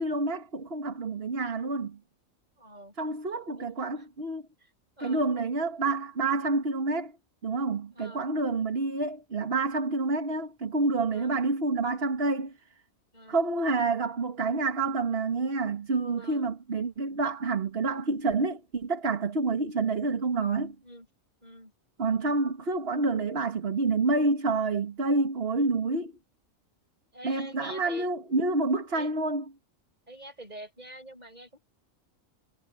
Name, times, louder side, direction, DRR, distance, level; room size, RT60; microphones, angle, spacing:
voice 1, 0.0-2.0 3.0-4.4 5.0-7.1 7.4-12.5 13.3-20.8 22.0-26.1 27.2-29.4, right 3 dB, 50° right, 1.9 m, -28 dB
voice 2, 2.6-2.9 3.5-4.1 4.6-4.7 5.0-5.3 7.9-8.3 11.1-11.4 13.1-13.4 16.2-16.4 20.8-21.1 21.4-21.7 25.5-25.8 27.1-28.1 28.9-29.1 30.1-31.6, right 1 dB, 30° right, 7.7 m, -46 dB
omnidirectional pair, 1.4 m